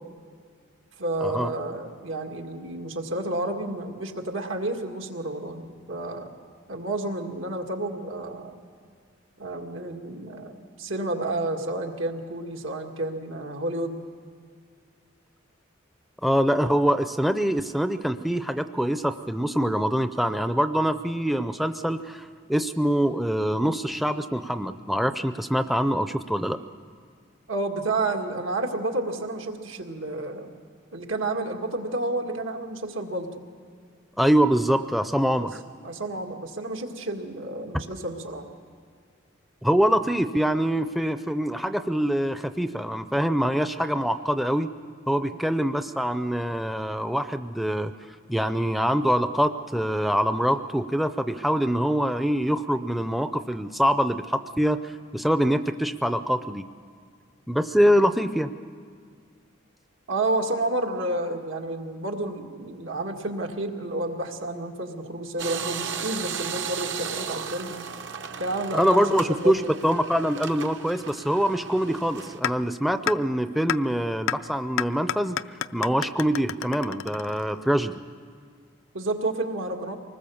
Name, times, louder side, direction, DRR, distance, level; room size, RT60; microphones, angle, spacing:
voice 1, 1.0-6.4 6.7-8.6 9.4-14.0 27.5-30.5 30.9-33.4 35.4-35.5 35.8-38.5 45.2-45.4 60.1-67.7 68.4-69.7 78.9-79.9, right 2 dB, 85° right, 3 dB, 2.0 m, -30 dB
voice 2, 16.2-26.6 34.2-35.6 39.6-44.7 45.1-47.9 48.3-54.8 55.1-56.6 57.5-58.5 68.7-75.4 75.7-78.0, equal, ahead, 10 dB, 0.5 m, -24 dB
sound 1, 65.4-72.4, right 6 dB, 65° right, 0.9 m, -35 dB
sound 2, 72.4-72.5 73.1-73.2 73.7-73.8 74.3-74.4 74.8-77.7, left 9 dB, 85° left, 0.5 m, -28 dB
25.0 x 20.0 x 7.1 m, 2.1 s
head